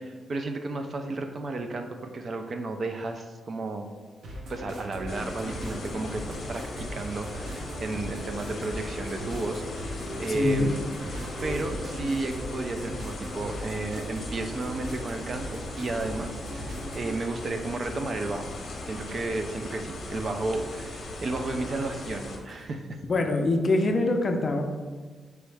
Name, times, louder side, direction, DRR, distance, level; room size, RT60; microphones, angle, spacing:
voice 1, 0.0-3.9 4.5-9.6 10.2-10.8 11.4-18.5 18.8-23.0, right 2 dB, 40° right, 6 dB, 0.3 m, -33 dB
sound 1, 4.2-17.2, equal, 65° right, 0.7 m, -39 dB
sound 2, 5.1-22.4, left 2 dB, 50° left, 0.8 m, -39 dB
voice 2, 10.3-10.7 23.1-24.6, left 2 dB, 35° left, 4 dB, 0.5 m, -24 dB
4.6 x 3.0 x 3.3 m, 1.5 s
wide cardioid pair, 145°, 0 cm